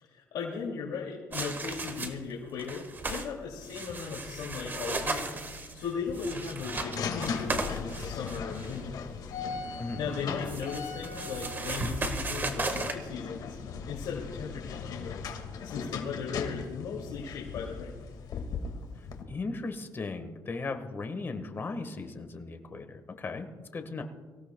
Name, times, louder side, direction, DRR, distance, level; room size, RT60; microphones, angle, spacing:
voice 1, 0.0-5.4 5.7-9.1 10.0-13.6 13.9-15.3 15.6-18.0, left 5 dB, 85° left, -3 dB, 2.5 m, -37 dB
sound 1, 1.3-2.3 2.6-3.3 3.6-8.8 10.1-13.0, right 3 dB, 25° right, 1.5 m, -36 dB
sound 2, 3.5-19.2, left 5 dB, 65° left, 1.9 m, -39 dB
voice 2, 19.2-24.0, left 3 dB, 30° left, 6 dB, 1.5 m, -37 dB
24.5 x 16.0 x 2.3 m, 1.4 s
cardioid pair, 135°, 8 cm